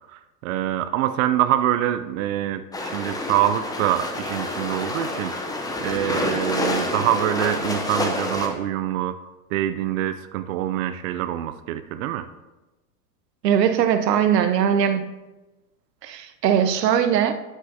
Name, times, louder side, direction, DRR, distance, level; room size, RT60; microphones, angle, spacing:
voice 1, 0.1-5.3 5.8-9.2 9.5-12.3, right 12 dB, 55° right, 10 dB, 0.6 m, -25 dB
sound 1, 2.7-8.5, left 2 dB, 10° left, 0.7 m, -28 dB
voice 2, 13.4-15.1 16.0-17.3, right 8 dB, 85° right, 9 dB, 0.8 m, -20 dB
12.0 x 6.2 x 2.7 m, 1.1 s
hypercardioid pair, 120°, 48 cm